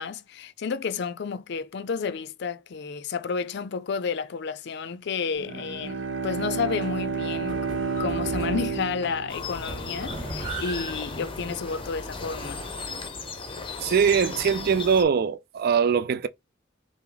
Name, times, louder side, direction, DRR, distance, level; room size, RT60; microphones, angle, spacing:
voice 1, 0.0-7.7 8.0-12.6, left 5 dB, 60° left, 0.4 m, -31 dB
Bowed string instrument, 5.4-10.2, right 5 dB, 65° right, 0.8 m, -31 dB
sound 1, 6.7-12.9, right 1 dB, 25° right, 2.1 m, -39 dB
sound 2, 9.3-15.0, left 4 dB, 25° left, 0.7 m, -36 dB
voice 2, 13.8-16.3, right 6 dB, 50° right, 0.4 m, -22 dB
5.8 x 2.0 x 3.8 m
head